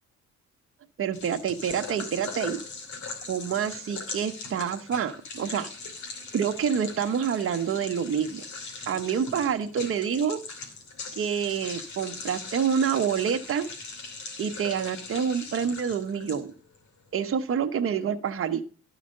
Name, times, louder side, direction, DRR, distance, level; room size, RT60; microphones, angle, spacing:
voice 1, 1.0-2.6 3.3-5.7 6.3-8.4 8.9-10.4 11.1-13.7 14.4-16.5 17.1-18.7, right 7 dB, 45° right, 6 dB, 1.0 m, -27 dB
sound 1, 1.1-16.8, left 4 dB, 70° left, 2.8 m, -40 dB
12.0 x 5.0 x 6.4 m, 0.39 s
cardioid pair, 90°, 30 cm